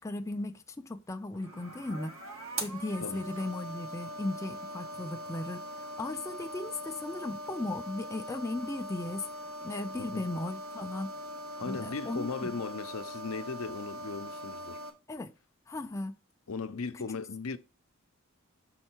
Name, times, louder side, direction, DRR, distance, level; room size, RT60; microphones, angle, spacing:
voice 1, 0.0-9.3 9.6-11.1 11.6-12.5 15.1-15.3 15.7-16.2 16.9-17.1, left 2 dB, 15° left, 0.4 m, -37 dB
sound 1, 1.3-14.9, right 1 dB, 75° right, 1.4 m, -42 dB
voice 2, 11.6-14.8 16.5-17.6, left 4 dB, 80° left, 0.6 m, -37 dB
6.3 x 4.4 x 4.5 m
head